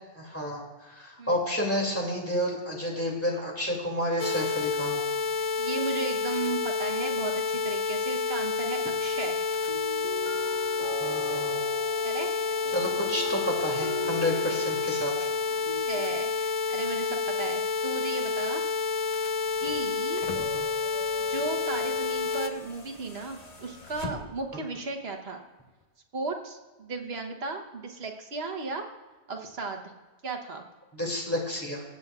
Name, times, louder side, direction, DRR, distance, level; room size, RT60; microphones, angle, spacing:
voice 1, 0.1-5.0 11.0-11.6 12.7-15.3 20.4-20.7 30.9-31.8, left 1 dB, 10° left, -2 dB, 2.5 m, -30 dB
sound 1, 4.2-22.5, left 4 dB, 55° left, 0.3 m, -29 dB
voice 2, 5.6-9.4 12.0-12.3 14.5-15.1 15.7-18.6 19.6-20.2 21.2-25.4 26.1-28.8 29.3-29.9 30.2-30.6, right 3 dB, 70° right, 3 dB, 1.3 m, -35 dB
sound 2, 8.7-15.9, equal, 50° right, 1.6 m, -41 dB
sound 3, 19.5-24.6 25.8-25.9, left 3 dB, 40° left, 1.2 m, -44 dB
22.5 x 8.0 x 2.4 m, 1.3 s
omnidirectional pair, 1.1 m